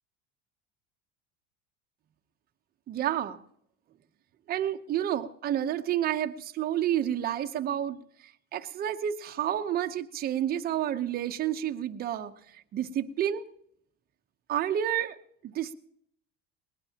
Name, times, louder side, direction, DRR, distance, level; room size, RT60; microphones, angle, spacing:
voice 1, 2.9-3.4 4.5-8.0 8.5-13.4 14.5-15.2 15.4-15.7, right 10 dB, 30° right, 7 dB, 0.8 m, -30 dB
20.5 x 19.5 x 2.9 m, 0.70 s
cardioid pair, 150°, 32 cm